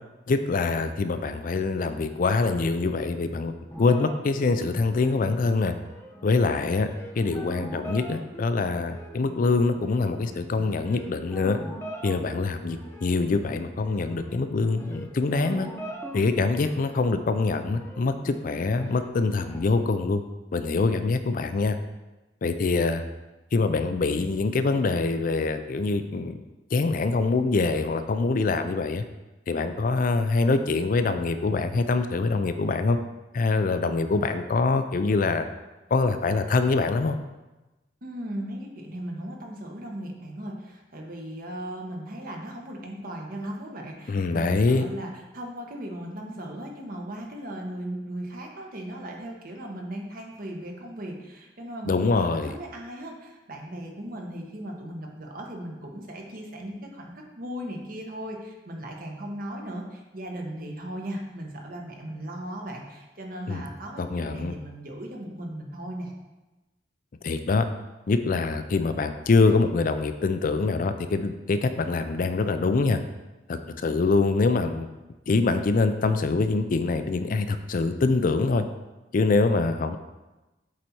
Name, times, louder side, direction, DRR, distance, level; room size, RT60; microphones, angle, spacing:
voice 1, 0.3-5.7 6.2-6.9 7.2-11.6 12.0-15.7 16.1-20.2 20.5-21.8 22.4-23.0 23.5-26.4 26.7-29.0 29.5-33.0 33.3-35.5 35.9-37.2 44.1-44.9 51.9-52.5 63.5-63.6 64.0-64.5 67.2-67.7 68.1-73.0 73.5-74.9 75.3-78.6 79.1-80.0, left 3 dB, 50° left, 9 dB, 0.4 m, -24 dB
sound 1, 3.7-19.6, right 1 dB, 15° left, 0.9 m, -42 dB
voice 2, 38.0-66.1, right 1 dB, 55° right, 1 dB, 1.2 m, -37 dB
7.7 x 4.1 x 4.4 m, 1.1 s
head